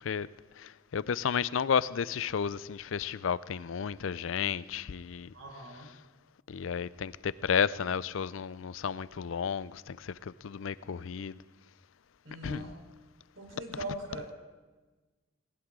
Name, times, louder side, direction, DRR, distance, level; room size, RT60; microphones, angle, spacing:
voice 1, 0.6-5.3 6.5-10.1 10.4-11.4 12.4-12.7, left 7 dB, 80° left, 0.4 m, -32 dB
voice 2, 5.3-5.9 12.2-12.8 13.4-14.3, right 1 dB, 80° right, 4.0 m, -41 dB
19.0 x 18.5 x 3.7 m
head